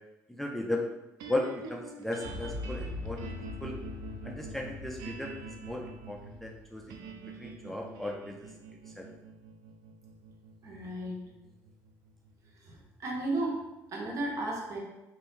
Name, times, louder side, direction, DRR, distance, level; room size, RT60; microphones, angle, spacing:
voice 1, 0.3-0.9 1.2-3.7 4.2-5.3 5.6-7.0 7.4-8.5 9.0-9.1, left 1 dB, 5° left, 0 dB, 0.4 m, -36 dB
sound 1, 1.2-13.5, right 3 dB, 80° right, 0.4 m, -47 dB
Boom, 2.2-8.1, left 2 dB, 85° left, 0.4 m, -43 dB
voice 2, 10.6-11.2 12.6-13.6 13.9-14.8, right 2 dB, 50° right, -2 dB, 1.0 m, -34 dB
2.6 x 2.5 x 3.5 m, 0.99 s
supercardioid pair, 80°, 7 cm